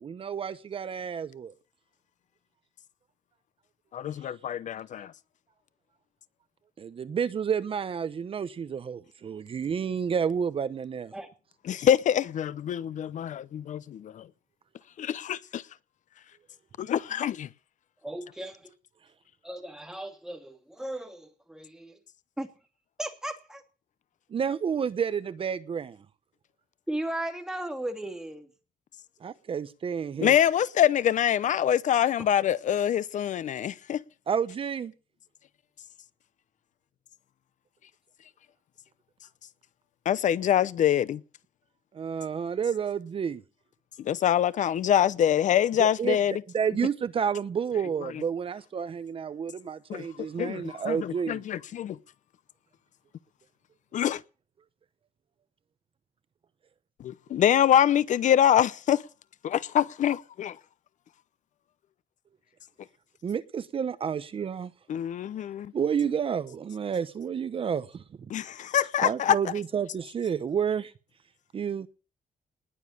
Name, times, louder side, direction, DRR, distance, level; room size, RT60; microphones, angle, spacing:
voice 1, 0.0-1.5 6.8-11.1 24.3-26.0 29.2-30.3 34.3-34.9 41.9-43.4 45.8-46.2 46.5-51.4 63.2-64.7 65.7-68.0 69.0-70.9 71.5-71.9, right 7 dB, 40° right, 1.0 m, -30 dB
voice 2, 3.9-5.1 11.6-14.3 15.0-15.6 16.8-17.5 30.2-34.0 40.1-41.2 44.0-46.4 48.0-48.2 49.9-50.1 50.4-52.0 53.9-54.2 57.3-59.0 59.4-60.6 64.9-65.7 68.3-69.4, left 10 dB, 60° left, 0.7 m, -25 dB
voice 3, 18.0-18.7 19.4-22.0 22.4-22.5 23.0-23.6 26.9-28.5, right 1 dB, 5° right, 2.7 m, -36 dB
20.0 x 7.3 x 10.0 m
wide cardioid pair, 155°, 14 cm